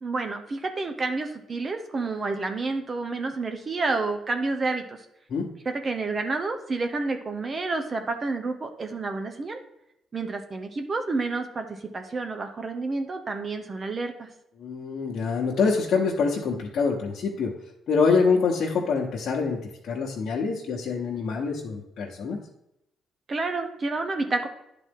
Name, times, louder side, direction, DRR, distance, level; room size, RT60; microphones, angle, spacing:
voice 1, 0.0-5.0 5.6-9.6 10.1-14.3 23.3-24.5, right 3 dB, 35° right, 6 dB, 0.8 m, -29 dB
voice 2, 14.6-17.5 17.9-19.6 19.8-22.4, left 5 dB, 60° left, -4 dB, 1.1 m, -25 dB
10.0 x 3.9 x 3.7 m, 0.83 s
cardioid pair, 90°, 0 cm